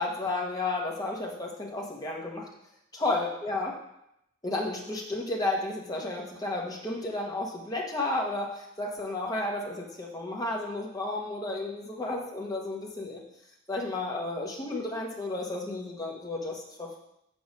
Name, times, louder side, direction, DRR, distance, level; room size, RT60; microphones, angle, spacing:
voice 1, 0.0-2.5 3.0-3.8 4.4-13.2 13.7-17.0, left 2 dB, 20° left, -2 dB, 1.2 m, -32 dB
6.3 x 5.7 x 5.4 m, 0.80 s
head